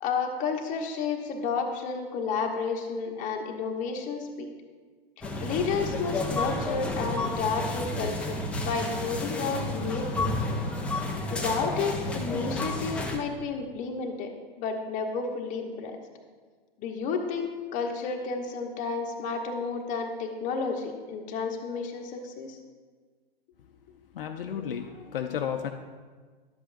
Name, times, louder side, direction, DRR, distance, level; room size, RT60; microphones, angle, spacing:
voice 1, 0.0-4.5 5.4-8.4 8.6-10.3 11.3-14.3 14.6-16.0 16.8-22.6, left 5 dB, 25° left, 2 dB, 1.0 m, -31 dB
sound 1, 5.2-13.2, left 2 dB, 5° left, 0.4 m, -31 dB
voice 2, 24.1-25.7, left 8 dB, 65° left, 5 dB, 0.6 m, -32 dB
11.5 x 7.8 x 2.6 m, 1.5 s
figure-of-eight pair, 115°, 31 cm